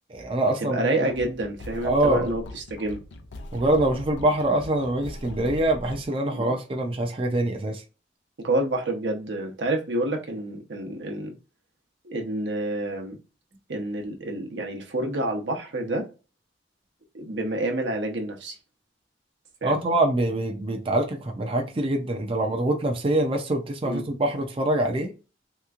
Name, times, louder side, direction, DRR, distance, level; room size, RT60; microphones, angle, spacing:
voice 1, 0.1-0.8 1.8-2.3 3.5-7.8 19.6-25.1, right 1 dB, 30° right, 0.5 m, -24 dB
voice 2, 0.6-3.0 6.3-6.5 8.4-11.3 12.0-13.2 13.7-16.1 17.1-18.6 19.6-19.8 23.8-24.1, right 1 dB, 75° right, 0.8 m, -28 dB
sound 1, 1.1-6.1, left 1 dB, 90° left, 0.6 m, -40 dB
3.4 x 2.9 x 2.4 m
head